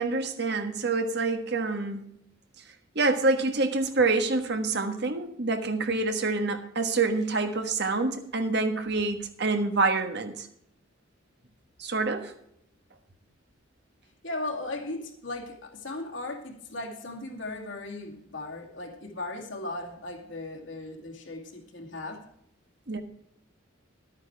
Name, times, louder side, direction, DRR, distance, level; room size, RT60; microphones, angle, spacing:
voice 1, 0.0-2.0 2.9-10.5 11.8-12.3 22.9-23.0, right 3 dB, 55° right, 1.4 m, -27 dB
voice 2, 14.2-22.2, left 2 dB, 65° left, 2.4 m, -37 dB
12.0 x 9.1 x 4.6 m
head